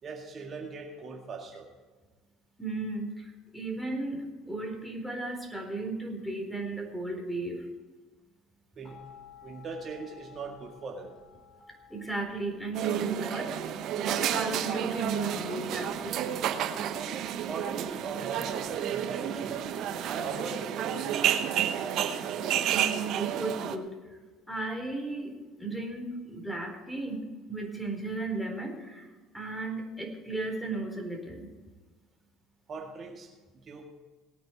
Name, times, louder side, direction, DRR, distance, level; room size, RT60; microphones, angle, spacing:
voice 1, 0.0-1.7 8.8-9.0 9.4-11.1 17.5-19.6 20.1-21.8 32.7-33.9, right 4 dB, 45° right, 1 dB, 2.0 m, -40 dB
voice 2, 2.6-7.7 11.9-16.3 22.7-24.0 24.5-27.2 27.5-29.1 29.3-31.5, right 3 dB, 5° left, 3 dB, 4.0 m, -35 dB
sound 1, 8.8-20.4, left 8 dB, 45° left, 4.5 m, -56 dB
sound 2, 12.7-23.8, right 9 dB, 60° right, 1.0 m, -31 dB
19.0 x 9.0 x 4.6 m, 1.3 s
hypercardioid pair, 65°, 0 cm